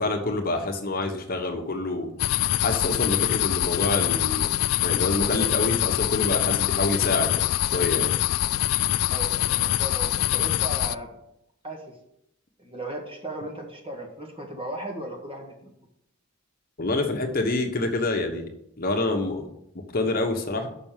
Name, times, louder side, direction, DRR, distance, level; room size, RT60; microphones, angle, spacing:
voice 1, 0.0-2.3 2.6-4.6 4.8-8.2 16.8-18.5 18.8-19.5 19.9-20.7, left 2 dB, 45° left, 4 dB, 1.1 m, -27 dB
sound 1, 2.2-10.9, left 14 dB, 80° left, 0.3 m, -24 dB
voice 2, 9.1-11.2 11.6-11.8 12.6-15.7, right 1 dB, 25° right, 0 dB, 1.9 m, -36 dB
6.1 x 6.0 x 7.3 m, 0.79 s
head